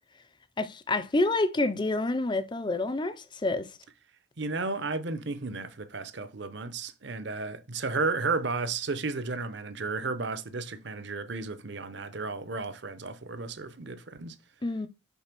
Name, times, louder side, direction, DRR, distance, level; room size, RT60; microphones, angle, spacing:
voice 1, 0.6-3.2 3.4-3.7 14.6-14.9, left 2 dB, 25° left, 0.5 m, -27 dB
voice 2, 4.4-14.4, right 3 dB, 60° right, 0.8 m, -33 dB
5.6 x 3.8 x 6.0 m
head